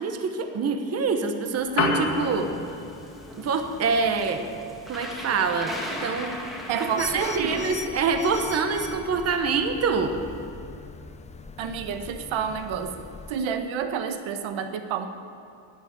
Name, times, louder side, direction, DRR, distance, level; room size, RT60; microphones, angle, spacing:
voice 1, 0.0-2.5 3.4-4.4 4.9-5.7 6.0-6.4 7.0-10.1, right 4 dB, 35° right, 6 dB, 0.9 m, -25 dB
Piano, 1.5-10.5, left 4 dB, 60° left, 2.5 m, -36 dB
sound 1, 2.0-7.8, equal, ahead, 1.6 m, -38 dB
voice 2, 6.7-7.6 11.6-15.1, right 7 dB, 80° right, 8 dB, 1.0 m, -29 dB
sound 2, 7.0-13.4, left 5 dB, 15° left, 0.3 m, -40 dB
11.5 x 9.8 x 8.0 m, 2.6 s
cardioid pair, 170°, 46 cm